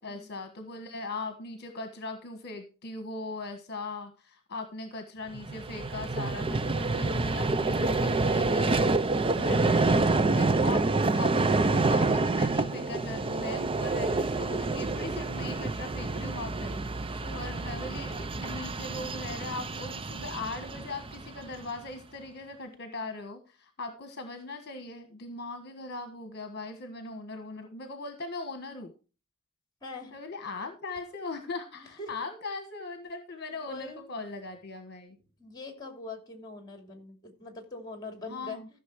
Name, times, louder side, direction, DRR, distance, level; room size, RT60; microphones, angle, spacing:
voice 1, 0.0-8.9 9.4-16.8 17.3-28.9 30.1-35.2 38.3-38.7, left 3 dB, 50° left, 7 dB, 1.4 m, -39 dB
Vehicle, 5.3-21.7, right 3 dB, 25° right, 0.5 m, -28 dB
voice 2, 17.2-17.9 29.8-30.1 31.7-32.1 33.5-34.0 35.4-38.6, left 3 dB, 20° left, 5 dB, 2.8 m, -43 dB
14.5 x 6.4 x 4.7 m, 0.34 s
head